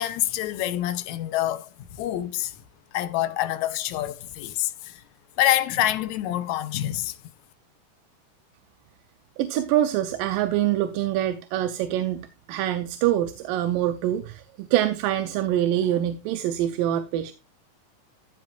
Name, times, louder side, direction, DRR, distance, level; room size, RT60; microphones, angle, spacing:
voice 1, 0.0-2.6 2.9-5.0 5.4-7.2, left 13 dB, 70° left, 2.0 m, -26 dB
voice 2, 9.4-17.3, right 12 dB, 90° right, 2.5 m, -25 dB
14.5 x 7.5 x 2.5 m
omnidirectional pair, 3.9 m